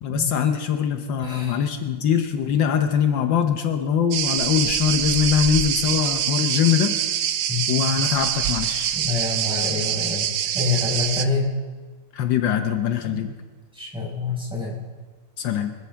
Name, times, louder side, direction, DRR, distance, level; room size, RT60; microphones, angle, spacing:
voice 1, 0.0-7.0 7.7-8.9 12.1-13.3 15.4-15.7, left 8 dB, 75° left, 6 dB, 1.6 m, -22 dB
voice 2, 1.2-1.6 7.5-7.6 8.9-11.5 13.7-14.8, left 4 dB, 5° right, -5 dB, 5.0 m, -27 dB
sound 1, 4.1-11.3, right 10 dB, 65° right, 1.1 m, -25 dB
25.0 x 13.5 x 3.4 m, 1.4 s
omnidirectional pair, 2.0 m